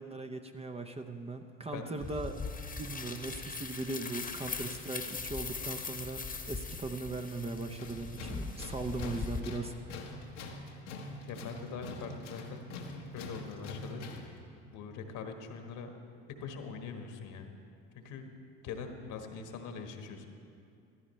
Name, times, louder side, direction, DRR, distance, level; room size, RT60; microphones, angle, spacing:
voice 1, 0.0-2.4 2.8-10.1, right 3 dB, 15° right, 6 dB, 0.7 m, -39 dB
sound 1, 2.0-9.4, left 4 dB, 25° left, 1.2 m, -40 dB
Tools, 7.8-14.4, left 2 dB, 80° left, 1.3 m, -44 dB
voice 2, 11.3-12.7 13.1-14.4 14.7-15.9 16.4-17.5 17.9-18.3 18.6-20.3, left 5 dB, 55° left, 5 dB, 1.4 m, -42 dB
15.5 x 13.0 x 3.2 m, 2.4 s
hypercardioid pair, 65°, 36 cm